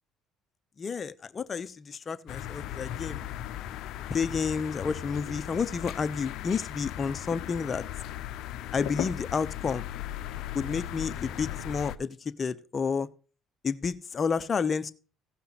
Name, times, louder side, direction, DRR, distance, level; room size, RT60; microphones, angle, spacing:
voice 1, 0.8-3.2 4.1-7.8 8.7-9.9 10.5-13.1 13.6-14.9, left 5 dB, 40° left, 0.8 m, -30 dB
sound 1, 2.3-12.0, left 12 dB, 70° left, 0.6 m, -37 dB
16.5 x 5.7 x 4.1 m
supercardioid pair, 80°, 0 cm